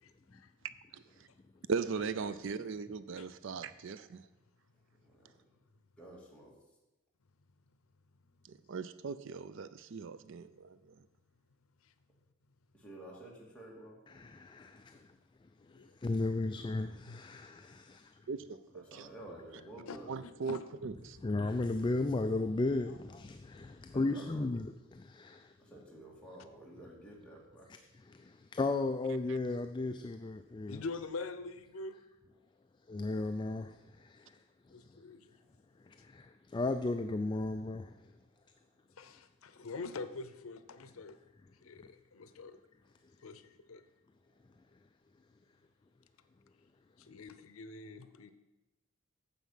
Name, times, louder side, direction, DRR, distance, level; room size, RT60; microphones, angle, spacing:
voice 1, 0.0-0.5 3.2-3.3 10.2-10.3 10.8-10.9 11.8-11.9 15.7-15.9 17.1-17.4 19.9-20.6 22.2-22.3 22.9-23.0 26.4-26.5 30.7-32.0 34.7-35.4 39.0-41.2 41.6-42.6 43.2-43.8 47.0-48.3, left 3 dB, 85° left, 0.7 m, -45 dB
voice 2, 1.7-4.2 8.5-10.9 18.3-19.1 20.1-21.2, right 5 dB, 60° right, 0.4 m, -39 dB
voice 3, 6.0-6.5 12.8-14.0 18.9-20.1 23.9-24.4 25.7-27.7, right 1 dB, 5° left, 2.3 m, -50 dB
voice 4, 14.1-15.1 15.7-18.2 21.2-25.5 27.7-30.8 32.9-34.4 34.7-35.0 35.9-38.1, left 2 dB, 20° left, 0.3 m, -35 dB
9.2 x 7.2 x 5.7 m
head